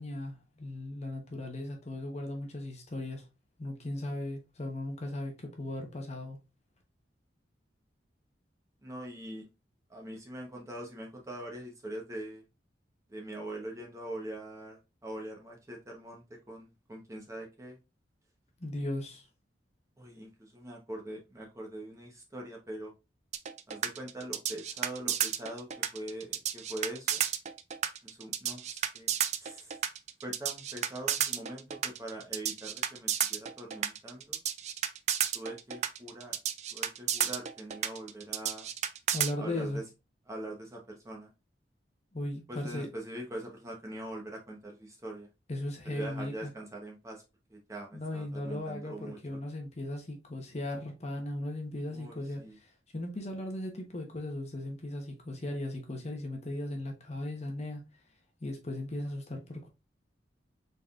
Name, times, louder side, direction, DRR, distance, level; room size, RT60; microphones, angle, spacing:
voice 1, 0.0-3.3 3.6-6.4 18.6-19.2 39.1-39.8 42.1-42.9 45.5-46.5 47.9-52.4 52.9-57.8 58.4-59.7, left 1 dB, 40° left, 1.0 m, -37 dB
voice 2, 8.8-9.5 9.9-12.4 13.1-17.8 20.0-22.9 23.7-27.3 28.0-29.1 29.4-29.8 30.2-34.4 35.3-36.4 36.7-38.7 39.4-39.8 40.3-41.3 42.5-45.3 45.8-47.2 47.5-49.4 51.9-52.6, right 1 dB, 15° right, 0.9 m, -43 dB
sound 1, 23.3-39.3, right 9 dB, 40° right, 0.3 m, -32 dB
4.1 x 3.7 x 2.4 m
head